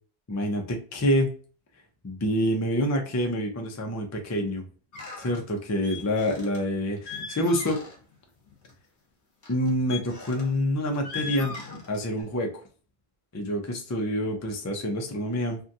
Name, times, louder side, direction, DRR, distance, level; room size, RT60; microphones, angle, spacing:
voice 1, 0.3-1.3 2.0-4.7 5.2-7.8 9.5-11.5 11.9-12.6 13.3-15.6, equal, 30° left, 3 dB, 0.3 m, -27 dB
sound 1, 4.9-5.4 5.8-6.6 6.9-8.1 8.5-8.7 9.4-10.5 10.9-12.2, left 5 dB, 50° left, 1.1 m, -39 dB
2.7 x 2.3 x 2.6 m, 0.39 s
omnidirectional pair, 1.1 m